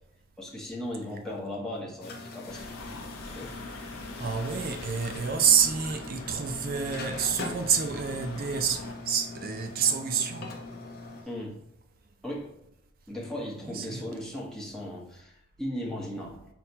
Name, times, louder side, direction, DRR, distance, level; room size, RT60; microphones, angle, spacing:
voice 1, 0.4-2.9 3.3-3.6 11.2-11.6 12.2-12.5 13.1-16.5, left 1 dB, 5° left, 0.8 m, -37 dB
sound 1, 2.0-11.2, left 3 dB, 50° left, 0.6 m, -42 dB
sound 2, 2.5-9.0, left 2 dB, 90° left, 0.7 m, -43 dB
voice 2, 4.2-10.5 13.6-14.1, right 7 dB, 45° right, 0.4 m, -28 dB
4.1 x 2.1 x 4.4 m
head